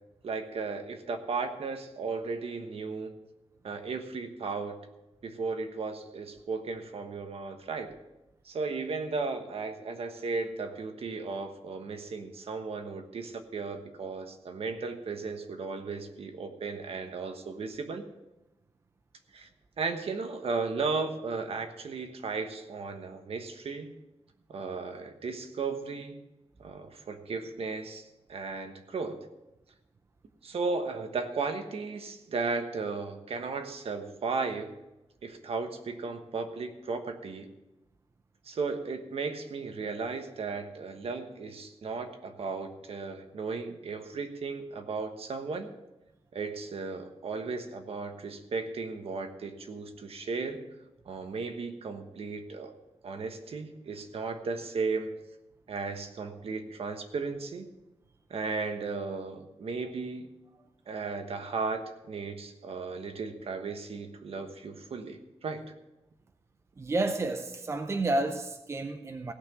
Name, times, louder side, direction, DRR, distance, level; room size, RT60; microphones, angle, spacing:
voice 1, 0.2-3.1 3.6-4.8 5.2-7.9 8.4-18.1 19.3-19.5 19.8-23.9 24.5-26.2 26.6-29.2 30.4-34.7 35.2-37.5 38.4-45.7 46.3-50.6 51.0-52.7 53.0-55.1 55.7-57.7 58.3-60.3 60.9-65.6, right 4 dB, 65° right, 1.2 m, -35 dB
voice 2, 66.8-69.3, right 2 dB, 25° right, 0.6 m, -30 dB
16.5 x 5.9 x 7.0 m
wide cardioid pair, 160°, 11 cm